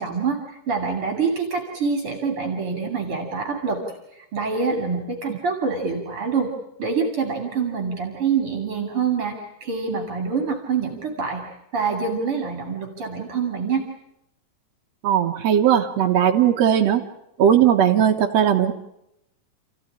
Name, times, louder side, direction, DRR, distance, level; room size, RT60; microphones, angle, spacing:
voice 1, 0.0-3.8 4.1-6.5 6.8-11.5 11.7-13.9, right 5 dB, 45° right, 3 dB, 3.5 m, -26 dB
voice 2, 15.0-17.0 17.4-18.7, right 9 dB, 60° right, 1 dB, 2.2 m, -18 dB
29.5 x 15.5 x 10.0 m, 0.84 s
omnidirectional pair, 3.7 m